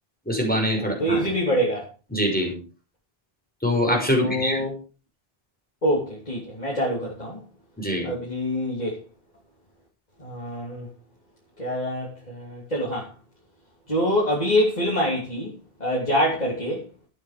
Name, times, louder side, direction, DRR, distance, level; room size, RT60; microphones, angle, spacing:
voice 1, 0.3-1.3 2.1-2.5 3.6-4.6 7.8-8.1, equal, 10° left, 5.9 m, -24 dB
voice 2, 0.8-1.8 4.1-4.7 5.8-7.4 8.0-9.0 10.2-10.9 11.6-13.1 13.9-15.5 15.8-16.8, equal, 40° left, 3.3 m, -25 dB
13.0 x 9.2 x 5.2 m
omnidirectional pair, 1.0 m